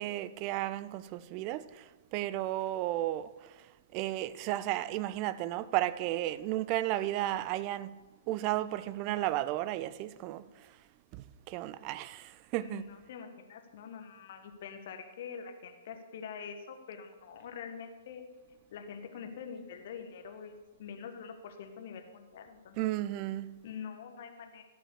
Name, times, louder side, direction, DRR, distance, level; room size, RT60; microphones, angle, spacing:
voice 1, 0.0-1.7 2.1-3.3 3.9-8.0 8.3-10.4 11.1-12.9 22.8-23.6, right 15 dB, 30° right, 0.5 m, -33 dB
voice 2, 12.6-18.2 18.7-23.0 23.6-24.6, left 6 dB, 45° left, 1.5 m, -45 dB
16.0 x 5.9 x 6.8 m
figure-of-eight pair, 115°, 0 cm